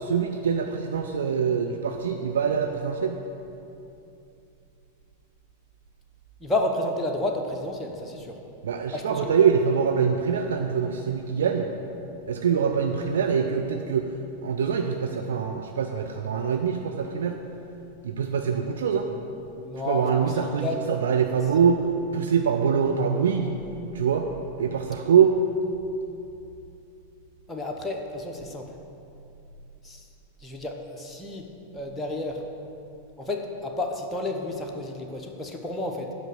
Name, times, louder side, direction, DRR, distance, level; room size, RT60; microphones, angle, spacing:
voice 1, 0.0-3.2 8.6-11.7 12.3-14.1 14.4-17.4 18.0-19.1 19.9-21.9 22.1-23.6 23.9-24.3 24.6-25.4, right 7 dB, 65° right, 4 dB, 0.4 m, -24 dB
voice 2, 6.4-8.4 8.9-9.4 19.6-20.3 20.6-20.8 27.5-28.7 29.8-30.1 30.4-31.5 31.7-32.5 33.2-36.1, left 2 dB, 10° left, 1 dB, 0.9 m, -31 dB
8.7 x 5.3 x 6.5 m, 2.8 s
figure-of-eight pair, 90°, 0 cm